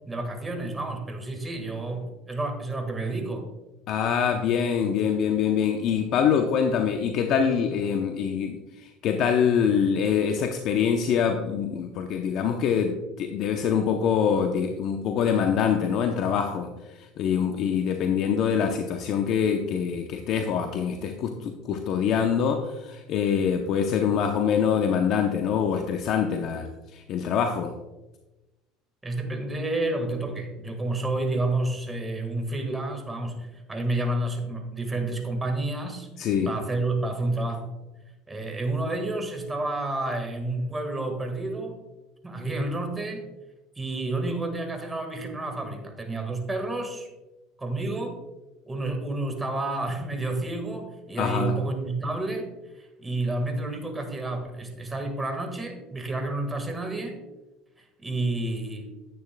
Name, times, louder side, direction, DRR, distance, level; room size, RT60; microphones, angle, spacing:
voice 1, 0.0-3.5 29.0-37.7 38.3-41.8 42.2-43.2 43.7-47.1 47.6-48.2 48.6-52.5 52.7-57.2 57.8-58.9, right 2 dB, 15° right, 4 dB, 1.6 m, -30 dB
voice 2, 3.9-16.7 17.0-27.7 36.2-36.5 51.2-51.5, left 7 dB, 55° left, 5 dB, 0.7 m, -25 dB
10.0 x 9.0 x 2.2 m, 1.0 s
supercardioid pair, 110°, 0 cm